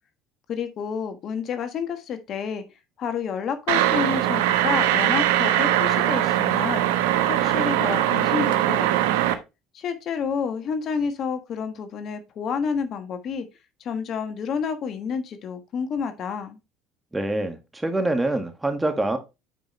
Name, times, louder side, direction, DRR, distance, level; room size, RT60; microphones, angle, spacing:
voice 1, 0.5-2.6 3.0-9.1 9.7-13.4 13.8-16.6, left 6 dB, 55° left, 1.4 m, -29 dB
sound 1, 3.7-9.3, right 12 dB, 90° right, 0.9 m, -21 dB
voice 2, 17.1-19.2, right 2 dB, 10° right, 1.8 m, -25 dB
9.1 x 5.0 x 3.2 m
supercardioid pair, 85°, 0 cm